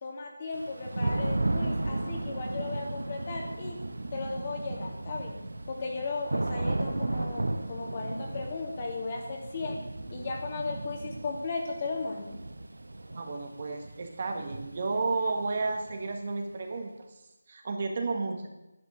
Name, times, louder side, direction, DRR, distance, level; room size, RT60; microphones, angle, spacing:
voice 1, 0.0-3.8 4.1-5.4 5.7-9.8 10.1-12.3, left 3 dB, 30° left, 0 dB, 2.6 m, -36 dB
Thunder / Rain, 0.5-16.3, right 2 dB, 80° right, 1.1 m, -35 dB
voice 2, 13.2-17.1 17.5-18.5, right 3 dB, 40° right, 4 dB, 1.7 m, -32 dB
11.0 x 10.5 x 6.4 m, 0.96 s
figure-of-eight pair, 165°, 0 cm